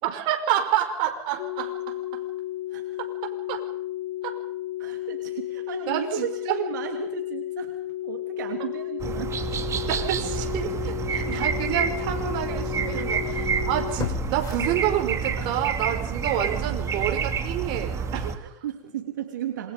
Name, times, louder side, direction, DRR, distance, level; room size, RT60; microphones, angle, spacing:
voice 1, 0.0-2.2 3.0-3.6 4.2-4.4 5.9-6.3 9.8-18.3, right 10 dB, 55° right, 4 dB, 5.3 m, -29 dB
sound 1, 1.4-14.0, left 14 dB, 80° left, 2.1 m, -33 dB
voice 2, 4.8-7.7 8.0-9.3 12.9-13.2 15.4-15.5 17.9-19.7, right 9 dB, 85° right, 3 dB, 3.1 m, -35 dB
sound 2, 9.0-18.4, right 6 dB, 30° right, 2.7 m, -29 dB
sound 3, 10.7-10.8 11.4-11.5 14.0-15.4 15.8-15.9, left 8 dB, 40° left, 5.0 m, -34 dB
27.5 x 22.5 x 5.3 m, 0.68 s
hypercardioid pair, 105°, 10 cm